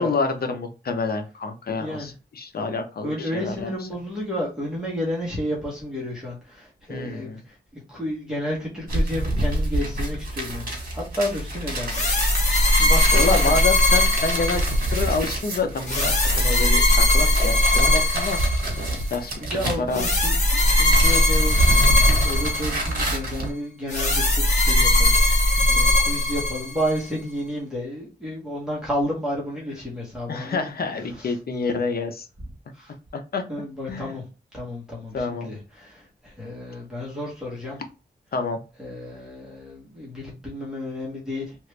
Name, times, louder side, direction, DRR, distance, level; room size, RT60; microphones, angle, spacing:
voice 1, 0.0-3.9 6.9-7.4 13.1-19.3 19.8-20.0 25.6-25.8 30.3-32.3 33.1-33.4 33.9-34.2 35.1-35.5 38.3-38.6, left 4 dB, 60° left, 6 dB, 0.6 m, -28 dB
voice 2, 3.0-12.0 12.8-13.6 19.5-30.7 31.2-31.3 32.7-32.9 33.5-34.2 34.5-37.8 38.8-41.7, left 1 dB, 5° right, -5 dB, 1.1 m, -31 dB
sound 1, 8.9-20.3 20.6-23.5, right 1 dB, 55° right, 1.4 m, -27 dB
sound 2, 11.9-15.0 15.9-19.0 19.9-23.1 23.9-27.0, left 1 dB, 40° left, 0.9 m, -20 dB
3.0 x 2.5 x 3.2 m, 0.32 s
wide cardioid pair, 145°, 18 cm